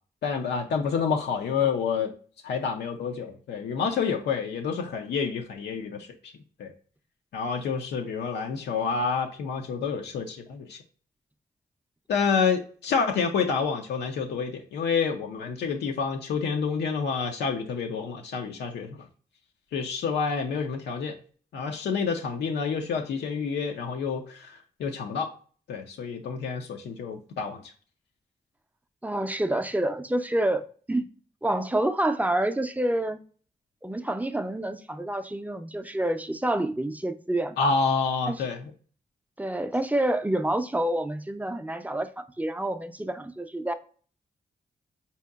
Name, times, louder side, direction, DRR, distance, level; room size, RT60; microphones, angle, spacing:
voice 1, 0.2-2.1 2.4-6.3 6.6-6.7 7.3-10.8 12.1-19.1 19.7-21.2 21.5-25.3 25.7-27.6 37.6-38.7, left 5 dB, 80° left, 0.4 m, -28 dB
voice 2, 29.0-31.0 31.4-33.2 33.8-37.7 38.3-38.4 39.4-43.7, right 1 dB, 10° right, 0.4 m, -28 dB
4.3 x 2.7 x 2.3 m
supercardioid pair, 40°, 17 cm